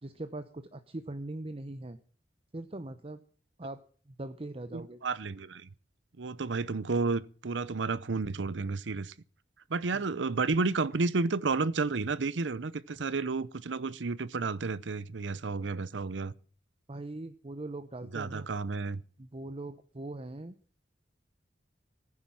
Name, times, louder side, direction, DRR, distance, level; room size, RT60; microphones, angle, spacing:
voice 1, 0.0-2.0 2.5-3.2 3.6-3.8 4.1-5.0 9.9-10.0 16.9-18.5 19.2-20.5, right 2 dB, 30° right, 0.8 m, -41 dB
voice 2, 4.7-5.7 6.2-9.1 9.7-16.3 18.1-19.0, right 3 dB, 80° right, 0.7 m, -31 dB
14.5 x 9.8 x 7.5 m
head